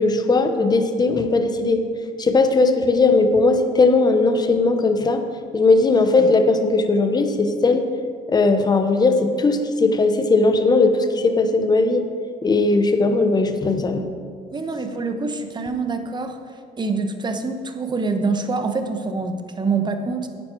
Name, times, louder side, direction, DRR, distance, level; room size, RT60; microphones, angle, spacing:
voice 1, 0.0-1.8 2.2-5.2 5.5-7.9 8.3-12.1 12.4-14.0, left 3 dB, 25° left, 7 dB, 0.9 m, -18 dB
voice 2, 14.5-20.3, right 4 dB, 25° right, 7 dB, 1.0 m, -25 dB
11.0 x 9.2 x 4.6 m, 2.1 s
cardioid pair, 110°, 17 cm